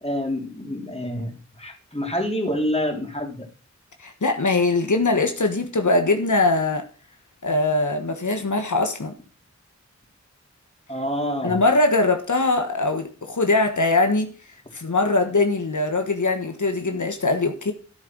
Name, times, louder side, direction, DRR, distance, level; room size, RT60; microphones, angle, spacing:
voice 1, 0.0-3.5 10.9-11.6, equal, 20° left, 3.7 m, -27 dB
voice 2, 4.0-6.8 7.4-9.1 11.4-14.3 14.7-17.7, left 2 dB, 85° left, 1.5 m, -21 dB
13.0 x 6.6 x 6.1 m
wide cardioid pair, 55°, 29 cm